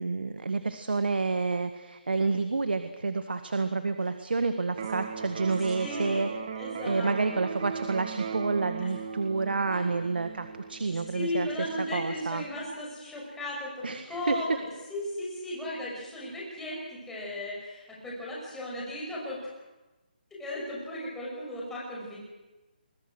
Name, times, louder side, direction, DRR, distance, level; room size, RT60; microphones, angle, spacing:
voice 1, 0.0-6.3 6.8-11.5 11.9-12.4 13.8-14.3, right 3 dB, 80° right, 8 dB, 1.8 m, -29 dB
Electric guitar, 4.7-12.7, right 6 dB, 35° right, 1.6 m, -38 dB
voice 2, 5.8-6.2 6.5-7.1 9.7-9.8 10.8-19.4 20.4-22.2, left 1 dB, 5° left, -5 dB, 6.0 m, -36 dB
27.0 x 22.0 x 6.3 m, 1.1 s
hypercardioid pair, 170°, 5 cm